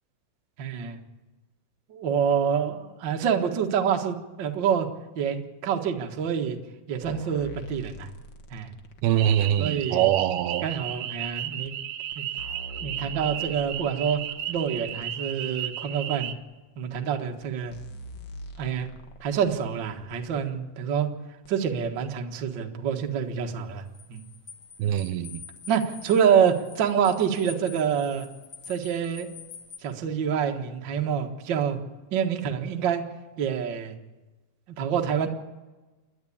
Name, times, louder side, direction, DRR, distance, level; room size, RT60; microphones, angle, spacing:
voice 1, 0.6-1.0 1.9-4.9 5.1-6.6 6.9-8.1 8.5-8.7 9.6-10.1 10.6-11.7 12.1-12.2 12.8-14.2 14.5-16.3 16.8-17.7 18.6-18.9 19.2-21.1 21.5-23.8 24.1-24.2 25.7-28.3 28.7-29.3 29.8-31.8 32.1-33.0 33.4-33.9 34.8-35.3, right 7 dB, 50° right, 1.4 m, -26 dB
sound 1, 7.0-9.8 10.7-10.8 11.6-11.7 12.1-15.1 15.9-16.0 16.9-17.0 17.4-17.5 17.7-20.4 21.4-21.5, left 1 dB, 65° left, 1.1 m, -44 dB
voice 2, 9.0-10.7 24.8-25.4, right 11 dB, 85° right, 2.7 m, -23 dB
sound 2, 9.2-16.3, right 11 dB, 70° right, 2.1 m, -34 dB
sound 3, 22.9-29.8, left 5 dB, 40° left, 2.0 m, -47 dB
29.5 x 11.0 x 8.7 m
omnidirectional pair, 4.3 m